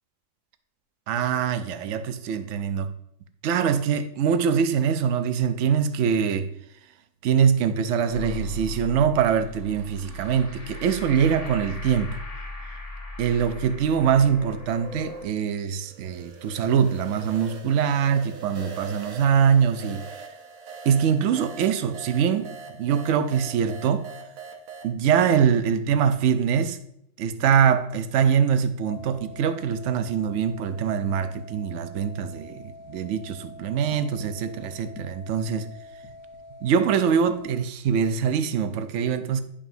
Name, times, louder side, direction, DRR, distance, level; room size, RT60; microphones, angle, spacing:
voice 1, 1.1-2.9 3.4-6.5 7.2-12.2 13.2-20.0 20.8-22.5 22.8-24.1 24.8-26.8 27.2-35.7 36.6-39.4, right 7 dB, 65° right, 10 dB, 0.9 m, -23 dB
sound 1, 8.1-15.3, left 2 dB, 30° left, 1.2 m, -38 dB
sound 2, 15.8-24.9, right 4 dB, 85° right, 1.3 m, -42 dB
sound 3, 28.9-37.5, left 2 dB, 70° left, 1.4 m, -45 dB
11.0 x 5.0 x 2.6 m, 0.72 s
omnidirectional pair, 1.5 m